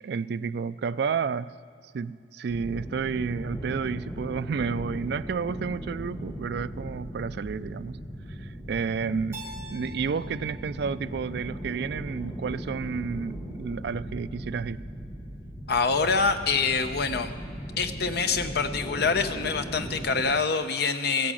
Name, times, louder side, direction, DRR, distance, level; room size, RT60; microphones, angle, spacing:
voice 1, 0.0-1.5 1.9-8.0 8.4-14.8, right 5 dB, 60° right, 16 dB, 0.3 m, -31 dB
sound 1, 2.5-20.4, equal, 15° left, 1.1 m, -38 dB
Keyboard (musical), 9.3-12.1, right 1 dB, 15° right, 2.4 m, -46 dB
voice 2, 15.7-17.3 17.8-21.3, left 4 dB, 60° left, 8 dB, 0.8 m, -25 dB
15.5 x 8.6 x 7.6 m, 2.4 s
head